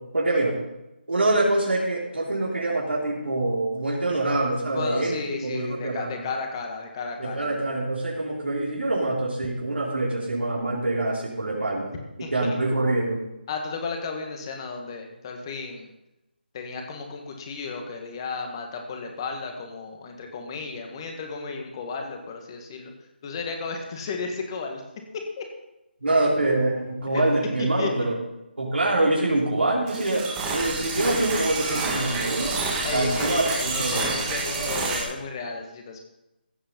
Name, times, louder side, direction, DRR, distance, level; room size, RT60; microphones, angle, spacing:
voice 1, 0.1-0.5 1.1-6.2 7.2-11.9 12.3-13.2 26.0-28.2 28.6-32.6 32.9-34.0, right 2 dB, 85° right, -4 dB, 3.8 m, -25 dB
voice 2, 4.7-7.6 12.2-12.6 13.5-15.9 16.5-22.9 23.2-24.8 25.1-25.4 27.1-27.2 27.6-27.9 32.8-36.0, left 4 dB, 25° left, 3 dB, 1.9 m, -33 dB
sound 1, 29.9-35.0, right 3 dB, 15° right, 1.8 m, -28 dB
15.5 x 6.8 x 5.5 m, 0.94 s
figure-of-eight pair, 160°, 6 cm